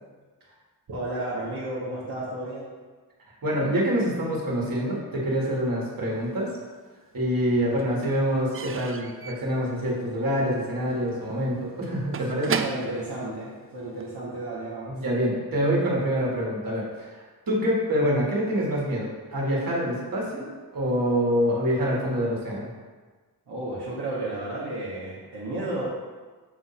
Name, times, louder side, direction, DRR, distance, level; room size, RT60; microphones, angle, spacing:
voice 1, 0.9-2.7 7.5-7.9 12.6-15.0 23.5-25.9, right 1 dB, 75° right, -8 dB, 1.3 m, -33 dB
voice 2, 3.4-6.5 7.1-12.6 14.9-20.5 20.7-22.7, equal, 60° right, -4 dB, 1.8 m, -26 dB
Slam / Squeak / Wood, 6.3-7.1 7.4-14.2, right 6 dB, 35° right, 0.4 m, -36 dB
7.2 x 2.6 x 5.7 m, 1.4 s
wide cardioid pair, 80°, 39 cm